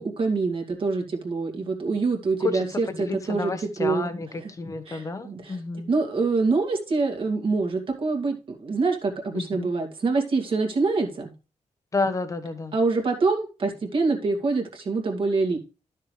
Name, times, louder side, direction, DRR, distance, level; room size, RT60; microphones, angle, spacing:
voice 1, 0.0-3.5 3.8-4.1 4.4-4.5 4.9-5.6 5.9-11.3 12.7-15.6, right 3 dB, 45° right, 2 dB, 2.3 m, -25 dB
voice 2, 2.4-5.9 9.3-9.7 11.9-12.8, left 3 dB, 25° left, 9 dB, 1.1 m, -30 dB
13.0 x 6.7 x 3.3 m, 0.32 s
wide cardioid pair, 165°, 12 cm